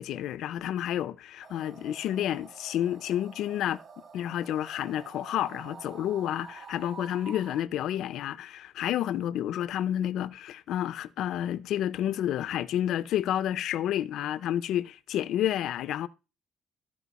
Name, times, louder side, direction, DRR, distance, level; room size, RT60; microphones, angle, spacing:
voice 1, 0.0-3.8 4.1-16.1, left 11 dB, 65° left, 0.4 m, -30 dB
sound 1, 1.4-7.6, right 6 dB, 35° right, 0.5 m, -48 dB
14.5 x 4.9 x 4.0 m
cardioid pair, 175°, 0 cm